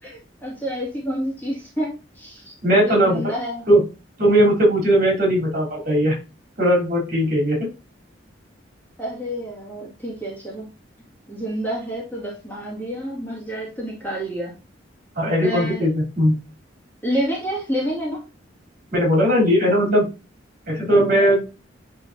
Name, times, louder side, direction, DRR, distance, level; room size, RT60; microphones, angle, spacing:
voice 1, 0.0-3.7 9.0-10.7 11.3-14.5 15.4-15.9 17.0-18.2, equal, 10° left, -4 dB, 2.2 m, -29 dB
voice 2, 2.6-3.2 3.7-3.8 4.2-6.2 6.6-7.7 15.2-16.4 18.9-20.0 20.7-21.4, equal, 50° right, -2 dB, 3.7 m, -18 dB
10.5 x 3.8 x 2.8 m, 0.29 s
head